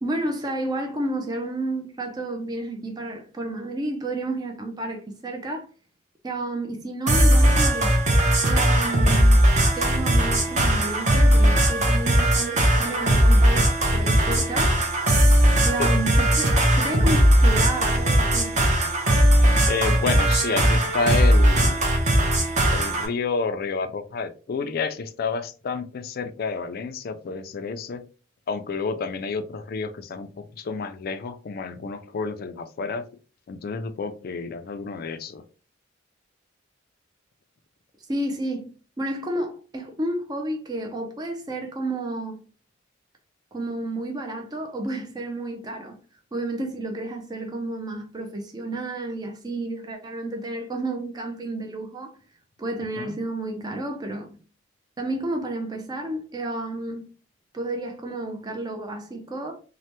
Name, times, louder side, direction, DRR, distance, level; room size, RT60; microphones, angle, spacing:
voice 1, 0.0-5.7 6.2-8.0 8.5-9.5 9.7-14.8 15.6-18.5 38.1-38.7 39.0-42.4 43.5-46.0 46.3-52.2 52.6-54.4 55.0-57.0 57.5-59.6, right 1 dB, 20° right, 0.4 m, -31 dB
sound 1, 7.1-23.1, right 1 dB, 40° right, 0.8 m, -19 dB
voice 2, 19.7-21.8 22.7-28.0 28.5-33.0 33.5-35.4 53.0-53.1, left 4 dB, 50° left, 0.3 m, -30 dB
3.2 x 2.1 x 2.8 m
head